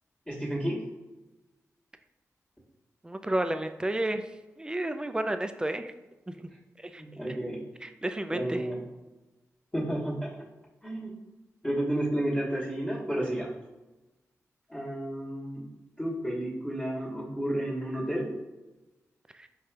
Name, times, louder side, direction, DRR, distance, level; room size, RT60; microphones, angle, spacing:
voice 1, 0.3-0.9 7.0-7.6 8.3-8.8 9.7-10.3 10.8-11.2 11.6-13.5 14.7-15.7 16.0-18.3, right 1 dB, 15° left, -10 dB, 1.3 m, -31 dB
voice 2, 3.0-4.2 4.6-5.9 6.3-6.5 6.8-7.0 7.8-8.7 19.3-19.5, right 1 dB, 15° right, 8 dB, 0.4 m, -31 dB
4.4 x 2.4 x 3.3 m, 1.1 s
cardioid pair, 40°, 6 cm